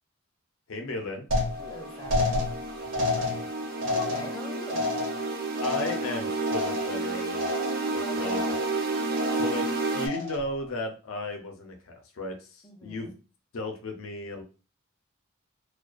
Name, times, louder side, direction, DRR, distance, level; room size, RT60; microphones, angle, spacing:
voice 1, 0.7-1.3 3.2-3.5 5.6-7.5 8.1-8.4 9.3-9.7 9.9-13.1 13.5-14.4, left 2 dB, 85° left, 4 dB, 0.5 m, -35 dB
sound 1, 1.3-7.1 7.3-7.9 8.2-8.8 9.1-9.6 10.0-10.5, left 3 dB, 65° right, 0.8 m, -31 dB
sound 2, 1.4-10.1, right 3 dB, 45° right, 0.4 m, -31 dB
voice 2, 1.6-2.4 3.8-4.9 7.9-8.6 12.6-13.2, left 1 dB, 15° left, 1 dB, 0.4 m, -43 dB
2.2 x 2.2 x 2.4 m, 0.34 s
head